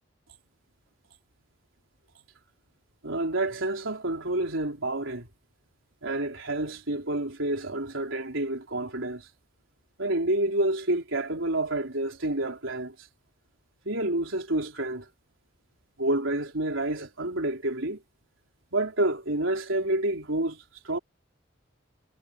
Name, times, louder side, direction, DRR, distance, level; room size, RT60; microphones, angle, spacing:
voice 1, 3.0-5.3 6.0-9.3 10.0-13.1 13.9-15.1 16.0-18.0 18.7-21.0, right 1 dB, 80° right, 3.6 m, -29 dB
head